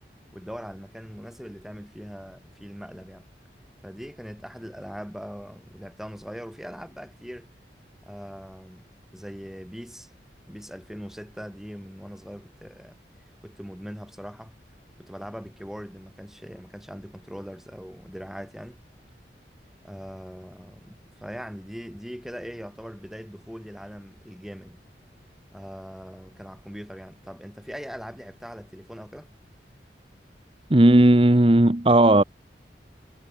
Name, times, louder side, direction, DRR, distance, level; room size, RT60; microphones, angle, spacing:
voice 1, 0.3-3.3 3.8-7.5 8.1-10.1 10.5-13.0 13.4-14.5 15.0-18.8 19.8-24.8 25.5-29.3, equal, ahead, 6.9 m, -41 dB
voice 2, 30.7-32.2, right 1 dB, 30° right, 1.0 m, -16 dB
head